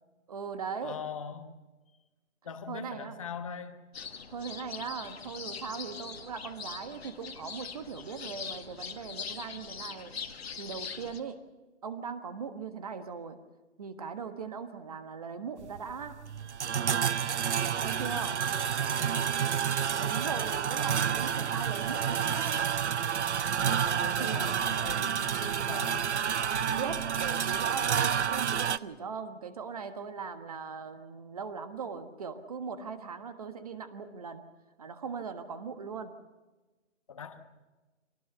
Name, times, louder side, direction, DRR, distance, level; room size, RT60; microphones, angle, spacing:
voice 1, 0.3-1.0 2.7-3.2 4.3-10.1 10.5-11.4 11.8-13.4 13.8-16.2 17.8-18.4 20.0-22.7 24.2-24.4 26.7-34.4 34.8-36.1, right 6 dB, 30° right, 9 dB, 1.4 m, -39 dB
voice 2, 0.8-1.5 2.4-3.8 18.0-19.5 23.8-26.1 37.1-37.4, left 6 dB, 25° left, 9 dB, 1.2 m, -42 dB
sound 1, 3.9-11.2, left 6 dB, 55° left, 1.8 m, -42 dB
sound 2, 15.6-28.8, right 8 dB, 60° right, 0.7 m, -29 dB
24.5 x 18.5 x 6.9 m, 1.2 s
hypercardioid pair, 170°, 38 cm